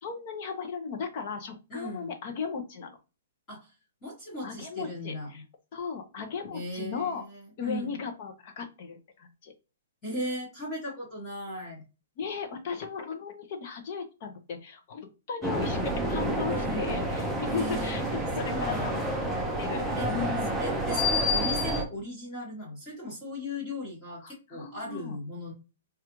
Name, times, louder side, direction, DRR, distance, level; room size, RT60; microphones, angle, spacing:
voice 1, 0.0-3.0 4.4-5.4 5.7-7.2 7.6-9.5 12.2-19.2 19.6-20.5 24.2-25.2, left 6 dB, 35° left, 6 dB, 0.7 m, -36 dB
voice 2, 1.7-2.1 3.5-3.7 4.0-5.4 6.5-8.0 10.0-11.8 16.5-17.0 17.5-19.4 19.9-20.1 20.5-25.5, left 1 dB, 15° left, -6 dB, 1.1 m, -38 dB
sound 1, 15.4-21.8, equal, 5° right, 0.5 m, -29 dB
4.7 x 2.4 x 2.9 m, 0.31 s
hypercardioid pair, 175°, 0 cm